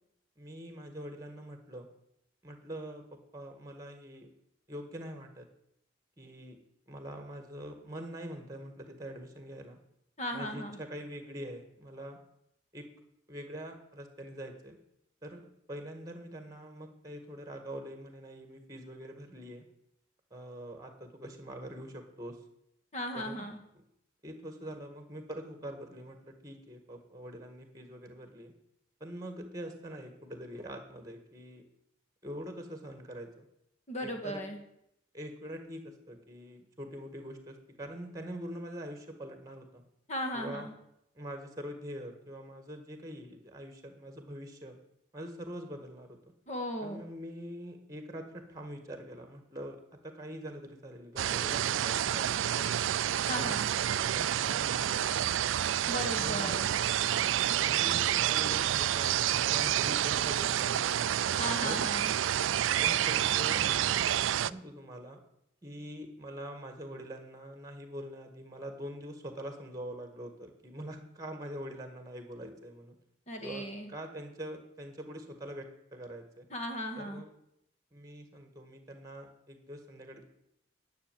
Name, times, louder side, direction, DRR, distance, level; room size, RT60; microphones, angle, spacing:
voice 1, 0.4-1.9 2.4-4.3 4.7-5.5 6.2-6.6 6.9-9.8 10.3-12.2 12.7-12.9 13.3-14.8 15.2-19.6 20.3-22.4 23.1-23.5 23.7-23.8 24.2-28.5 29.0-31.6 32.2-33.4 34.0-34.4 35.1-39.8 40.3-40.7 41.1-44.8 45.1-46.2 46.8-52.9 53.3-53.6 54.0-55.4 56.1-56.5 57.6-61.1 61.6-61.8 62.6-64.0 64.5-65.2 65.6-73.0 73.4-76.5 76.9-77.3 77.9-80.2, equal, 15° right, 6 dB, 1.6 m, -44 dB
voice 2, 10.2-10.8 22.9-23.6 33.9-34.6 40.1-40.7 46.5-47.0 53.3-53.6 55.9-56.7 61.4-62.1 73.3-73.9 76.5-77.2, equal, 35° left, 4 dB, 1.7 m, -36 dB
sound 1, 51.2-64.5, right 11 dB, 70° right, 0.3 m, -29 dB
11.0 x 6.4 x 9.1 m, 0.78 s
head